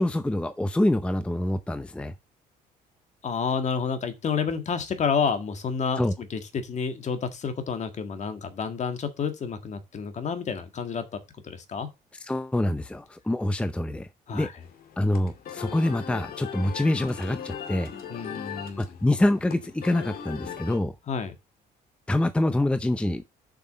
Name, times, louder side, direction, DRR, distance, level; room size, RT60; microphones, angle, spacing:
voice 1, 0.0-2.1 6.0-6.1 12.2-14.1 14.3-14.5 15.0-17.9 18.8-20.9 22.1-23.2, left 1 dB, 5° left, 0.7 m, -25 dB
voice 2, 3.2-11.9 14.3-14.5 18.1-18.8 21.1-21.3, left 6 dB, 45° left, 1.8 m, -30 dB
sound 1, 14.6-20.8, left 8 dB, 60° left, 2.2 m, -39 dB
7.2 x 6.0 x 5.5 m
cardioid pair, 110°, 17 cm